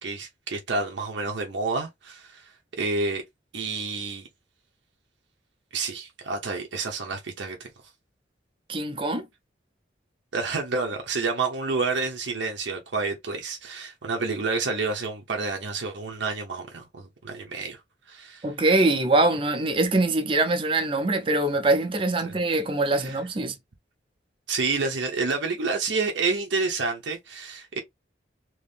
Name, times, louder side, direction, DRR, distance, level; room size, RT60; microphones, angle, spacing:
voice 1, 0.0-3.2 3.5-4.3 5.7-7.7 10.3-17.8 18.1-18.5 22.2-22.3 22.9-23.2 24.5-27.8, right 4 dB, 75° right, 0.7 m, -29 dB
voice 2, 8.7-9.2 18.4-23.5, right 2 dB, 30° right, 0.6 m, -23 dB
3.0 x 2.7 x 3.4 m
head